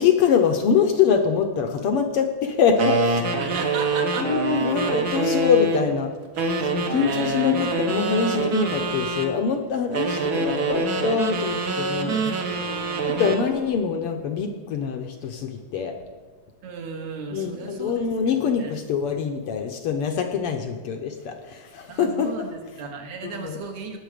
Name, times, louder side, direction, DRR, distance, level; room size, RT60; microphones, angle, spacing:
voice 1, 0.0-3.4 4.2-6.1 6.6-12.4 13.1-15.9 17.3-22.3 23.2-23.6, left 6 dB, 70° left, 5 dB, 1.4 m, -24 dB
sound 1, 2.8-5.9 6.4-9.3 9.9-13.5, right 3 dB, 55° right, 1.1 m, -25 dB
voice 2, 3.4-4.4 6.9-8.0 12.0-13.6 16.6-18.0 18.3-18.8 21.9-24.0, right 4 dB, 75° right, 3 dB, 2.7 m, -36 dB
18.5 x 7.2 x 5.1 m, 1.5 s
omnidirectional pair, 3.3 m